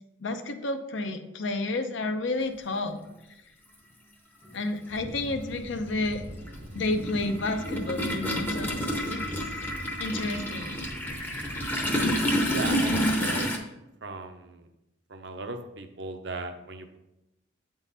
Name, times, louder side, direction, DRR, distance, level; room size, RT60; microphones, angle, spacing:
voice 1, 0.2-3.0 4.5-6.2 6.7-9.2 10.0-10.8, left 2 dB, 75° left, 7 dB, 0.7 m, -31 dB
Toilet flush, 3.1-3.2 4.5-4.6 4.9-13.6, equal, 10° left, 0.6 m, -29 dB
sound 1, 4.9-13.3, right 1 dB, 85° right, 1.3 m, -43 dB
voice 2, 12.5-13.5 14.0-14.7 15.1-17.0, right 3 dB, 65° right, 7 dB, 0.6 m, -37 dB
8.2 x 3.8 x 4.0 m, 0.90 s
head